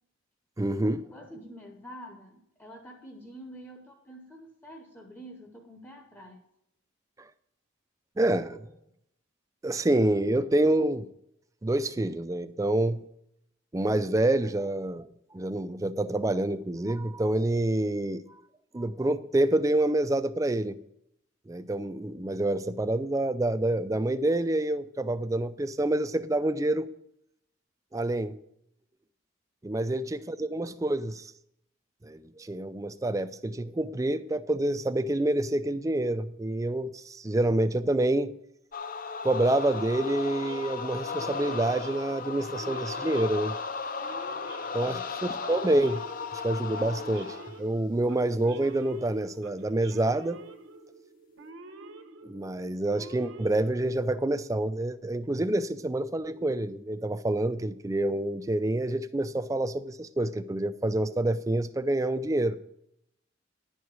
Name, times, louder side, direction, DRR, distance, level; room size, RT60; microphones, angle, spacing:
voice 1, 0.6-1.1 7.2-7.3 8.2-8.7 9.6-11.1 11.6-13.1 13.7-18.4 18.7-20.8 21.5-26.9 27.9-28.4 29.6-31.3 32.0-38.3 39.2-43.6 44.7-46.1 46.3-50.4 52.2-62.6, right 1 dB, 15° right, 0.4 m, -27 dB
voice 2, 1.1-6.4 8.7-8.8 29.8-29.9 44.8-45.0, equal, 10° left, 0.8 m, -47 dB
sound 1, 38.7-47.6, left 5 dB, 45° left, 0.6 m, -36 dB
Male speech man speaking / Siren, 39.6-54.3, right 3 dB, 70° right, 1.0 m, -48 dB
11.0 x 4.8 x 8.2 m
head